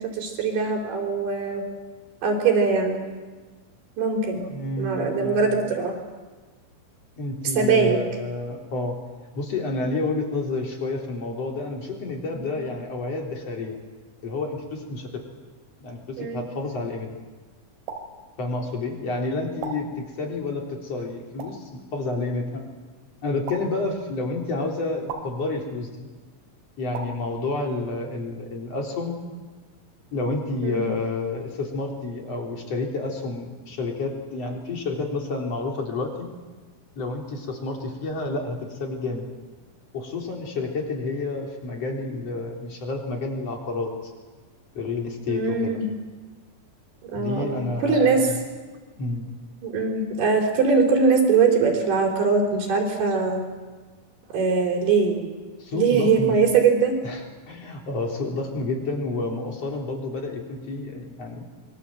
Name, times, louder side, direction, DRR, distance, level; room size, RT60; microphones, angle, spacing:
voice 1, 0.0-1.7 2.2-3.0 4.0-4.5 4.8-6.0 7.6-8.0 12.3-12.6 16.2-16.4 30.6-30.9 45.3-45.9 47.0-48.3 49.6-53.4 54.3-55.3 55.7-57.0, right 5 dB, 55° right, 2 dB, 5.5 m, -22 dB
voice 2, 4.4-5.6 7.2-8.9 9.3-13.8 14.2-15.2 15.8-17.1 18.4-22.6 23.2-26.1 26.8-29.2 30.1-36.3 37.0-39.3 39.9-44.1 44.7-45.8 47.1-48.4 49.0-49.3 55.6-56.4 57.0-57.2 57.5-61.5, left 3 dB, 35° left, 1 dB, 4.1 m, -29 dB
sound 1, 17.9-18.0 19.6-19.7 21.4-21.5 23.4-23.6 25.1-25.2 26.9-27.1, right 7 dB, 75° right, 5.4 m, -33 dB
26.5 x 23.0 x 7.7 m, 1.3 s
omnidirectional pair, 5.8 m